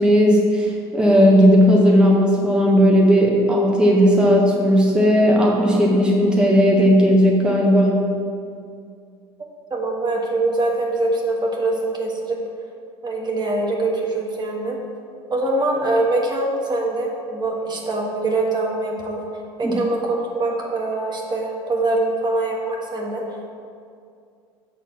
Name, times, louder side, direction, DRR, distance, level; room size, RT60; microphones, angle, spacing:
voice 1, 0.0-8.0 19.6-19.8, equal, 5° right, -3 dB, 1.3 m, -15 dB
voice 2, 9.7-12.4 13.0-14.8 15.3-19.2 19.6-23.5, right 2 dB, 35° right, -1 dB, 1.5 m, -23 dB
6.7 x 4.1 x 6.2 m, 2.3 s
supercardioid pair, 80°, 13 cm